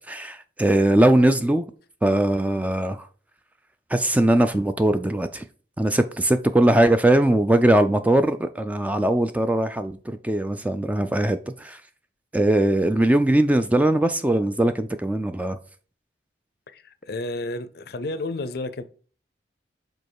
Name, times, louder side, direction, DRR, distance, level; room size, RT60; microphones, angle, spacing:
voice 1, 0.1-1.7 2.0-3.1 3.9-5.5 5.8-11.8 12.3-15.6, right 1 dB, 10° right, 0.3 m, -20 dB
voice 2, 16.7-18.8, left 2 dB, 60° left, 0.5 m, -31 dB
5.3 x 3.8 x 4.6 m
head